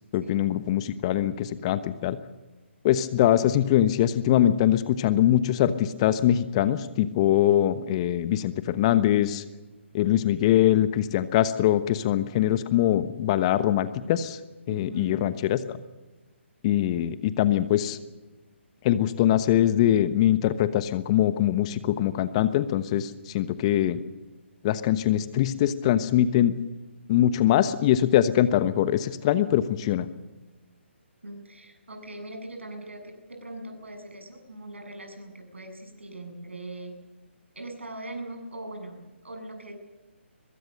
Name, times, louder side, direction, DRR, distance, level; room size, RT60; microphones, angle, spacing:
voice 1, 0.1-2.2 2.8-9.4 9.9-14.4 14.7-15.8 16.6-18.0 18.8-24.0 24.6-26.5 27.1-30.1, left 12 dB, 30° left, 13 dB, 1.1 m, -23 dB
voice 2, 14.7-15.3 31.2-36.9 37.5-39.7, right 1 dB, 70° right, 5 dB, 7.9 m, -40 dB
22.5 x 22.5 x 6.7 m, 1.2 s
figure-of-eight pair, 140°, 7 cm